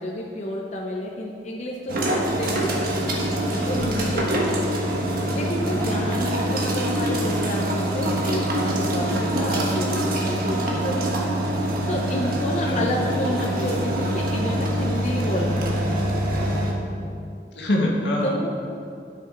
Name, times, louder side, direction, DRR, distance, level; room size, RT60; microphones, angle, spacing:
voice 1, 0.0-2.8 3.7-4.8 5.3-11.1 11.9-16.0 18.2-18.5, left 1 dB, 40° left, -1 dB, 0.7 m, -30 dB
sound 1, 1.9-16.7, right 1 dB, 55° right, 1.2 m, -24 dB
voice 2, 4.7-5.0 12.7-12.8 17.5-18.5, left 1 dB, 80° left, -2 dB, 1.6 m, -25 dB
11.5 x 6.5 x 3.9 m, 2.5 s
head